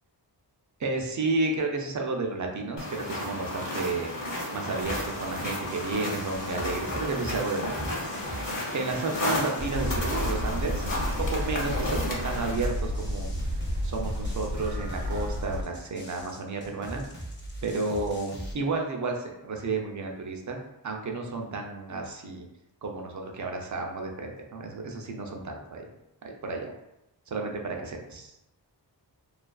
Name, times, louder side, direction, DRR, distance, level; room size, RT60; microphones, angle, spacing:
voice 1, 0.8-4.1 4.5-13.3 13.8-17.0 17.6-20.6 20.8-22.5 22.8-25.9 26.2-26.7 27.3-28.3, right 3 dB, 45° right, 2 dB, 0.4 m, -32 dB
sound 1, 2.8-12.5, left 1 dB, 55° left, 0.8 m, -33 dB
sound 2, 4.8-18.5, right 1 dB, 30° left, 0.5 m, -41 dB
sound 3, 9.6-15.6, equal, 85° right, 0.7 m, -32 dB
2.4 x 2.3 x 2.2 m, 0.87 s
wide cardioid pair, 80°, 42 cm